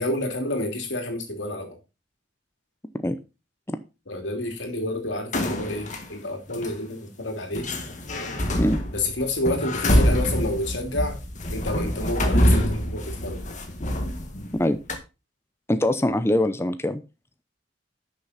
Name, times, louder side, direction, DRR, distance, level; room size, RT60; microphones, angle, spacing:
voice 1, 0.0-1.8 4.1-7.7 8.9-11.2 11.5-13.5, left 1 dB, 90° left, 4 dB, 2.8 m, -29 dB
sound 1, 5.3-6.0 6.5-6.7 7.5-14.6 14.9-15.0, equal, 45° left, 1.8 m, -25 dB
voice 2, 15.7-17.0, left 1 dB, 15° left, 10 dB, 0.6 m, -23 dB
11.0 x 6.5 x 4.2 m, 0.29 s
head